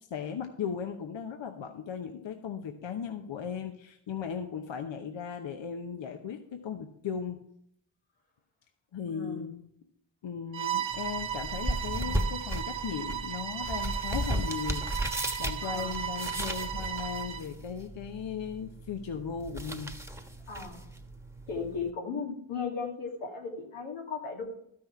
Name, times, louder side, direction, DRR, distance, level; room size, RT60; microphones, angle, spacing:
voice 1, 0.1-7.4 8.9-9.6 10.2-19.9, left 7 dB, 65° left, 5 dB, 1.0 m, -37 dB
voice 2, 9.1-9.5 15.6-16.1 20.5-20.9 21.5-24.4, left 5 dB, 90° left, -1 dB, 2.2 m, -36 dB
Bowed string instrument, 10.5-17.5, right 10 dB, 65° right, 0.9 m, -35 dB
sound 1, 10.9-21.9, right 1 dB, 5° right, 1.3 m, -36 dB
12.5 x 6.2 x 4.6 m, 0.73 s
supercardioid pair, 45°, 49 cm